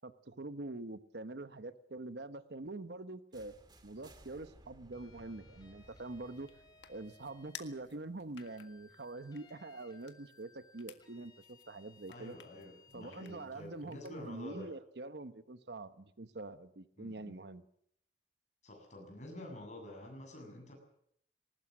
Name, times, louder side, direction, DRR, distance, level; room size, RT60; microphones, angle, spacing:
voice 1, 0.0-3.5 3.8-6.5 6.9-12.4 12.9-17.6, right 2 dB, 65° right, 12 dB, 1.0 m, -45 dB
sound 1, 3.3-9.2, right 1 dB, 25° right, 2.0 m, -61 dB
sound 2, 4.9-7.8 8.4-13.5, left 4 dB, 25° left, 4.1 m, -63 dB
sound 3, 5.8-14.5, left 9 dB, 85° left, 1.7 m, -58 dB
voice 2, 12.1-14.7 17.0-17.4 18.6-20.7, left 1 dB, 40° left, 2 dB, 7.6 m, -48 dB
20.5 x 19.5 x 7.4 m, 0.69 s
head